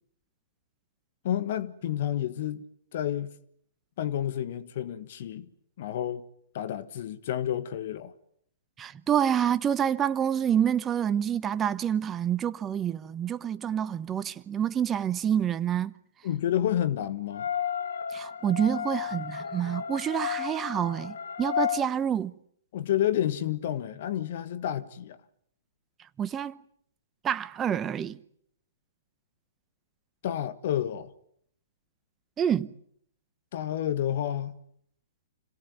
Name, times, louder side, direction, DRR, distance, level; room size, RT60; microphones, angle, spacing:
voice 1, 1.2-2.6 2.9-3.3 4.0-5.5 5.8-6.2 6.5-8.1 16.2-17.5 22.7-25.2 30.2-31.1 33.5-34.6, left 11 dB, 55° left, 1.4 m, -30 dB
voice 2, 8.8-15.9 18.1-22.3 26.2-26.6 27.2-28.2 32.4-32.7, right 9 dB, 20° right, 0.9 m, -27 dB
sound 1, 17.3-21.8, left 9 dB, 70° left, 1.6 m, -32 dB
27.0 x 17.5 x 9.6 m
hypercardioid pair, 125°, 0 cm